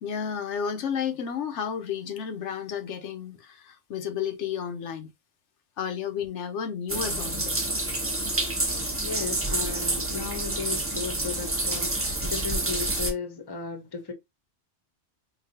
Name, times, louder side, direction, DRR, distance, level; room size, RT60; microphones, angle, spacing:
voice 1, 0.0-5.1 5.8-7.6, left 7 dB, 90° left, 1.1 m, -32 dB
sound 1, 6.9-13.1, right 2 dB, 15° right, 0.5 m, -28 dB
voice 2, 9.0-14.1, left 4 dB, 25° left, 0.7 m, -35 dB
5.0 x 2.3 x 2.7 m
omnidirectional pair, 1.2 m